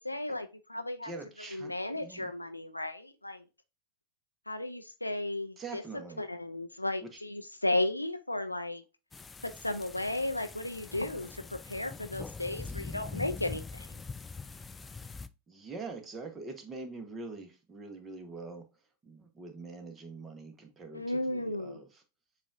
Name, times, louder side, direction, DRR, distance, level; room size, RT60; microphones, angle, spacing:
voice 1, 0.0-1.1 1.5-3.4 4.5-5.8 6.2-8.8 9.4-13.9 20.9-21.8, left 1 dB, 85° left, 0.4 m, -34 dB
voice 2, 1.0-2.3 5.6-6.2 7.0-7.2 12.6-12.9 15.5-18.6 19.0-21.9, right 3 dB, 15° right, 1.0 m, -44 dB
sound 1, 9.1-15.3, left 4 dB, 15° left, 0.3 m, -43 dB
7.2 x 2.5 x 2.5 m
figure-of-eight pair, 90°, 0 cm